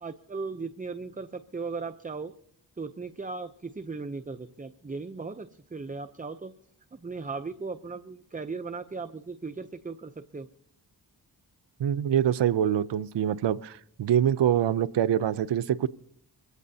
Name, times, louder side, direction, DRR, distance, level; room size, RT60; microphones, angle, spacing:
voice 1, 0.0-2.3 2.8-6.5 6.9-10.5, right 4 dB, 20° right, 10 dB, 0.6 m, -37 dB
voice 2, 11.8-15.9, right 10 dB, 80° right, 14 dB, 0.5 m, -25 dB
23.5 x 16.5 x 2.7 m, 0.66 s
cardioid pair, 55°, 43 cm